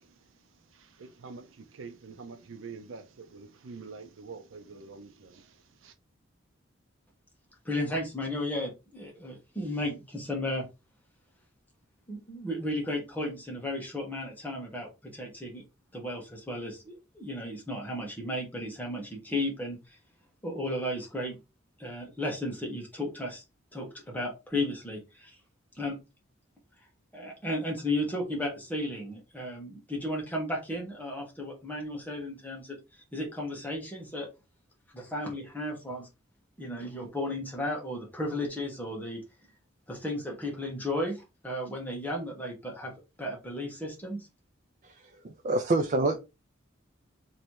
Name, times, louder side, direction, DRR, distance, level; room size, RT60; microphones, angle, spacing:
voice 1, 0.0-6.0, right 4 dB, 85° right, 0.6 m, -46 dB
voice 2, 7.6-10.6 12.1-15.6 15.9-20.0 20.4-21.3 21.8-23.4 23.7-25.3 25.7-25.9 27.1-32.7 33.1-34.3 34.9-36.1 36.6-39.2 39.9-42.9 43.2-44.3, left 1 dB, 10° left, 1.1 m, -34 dB
voice 3, 44.8-46.2, right 2 dB, 40° right, 0.4 m, -27 dB
3.1 x 2.8 x 4.6 m
head